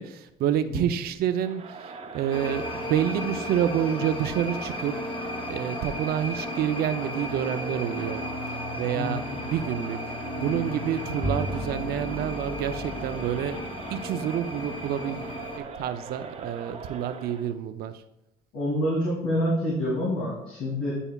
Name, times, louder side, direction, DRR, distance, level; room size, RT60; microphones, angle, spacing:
voice 1, 0.0-5.0 5.5-8.3 8.5-13.6 13.9-18.0, right 10 dB, 70° right, 10 dB, 0.5 m, -28 dB
Crowd, 1.4-17.5, right 4 dB, 40° right, 0.8 m, -40 dB
sound 1, 2.3-15.6, left 1 dB, 30° left, 0.9 m, -35 dB
voice 2, 8.9-9.4 18.5-20.9, equal, 85° left, -8 dB, 2.6 m, -27 dB
Bowed string instrument, 11.2-16.9, equal, 5° right, 0.5 m, -38 dB
9.9 x 5.5 x 2.3 m, 0.90 s
supercardioid pair, 85°, 16 cm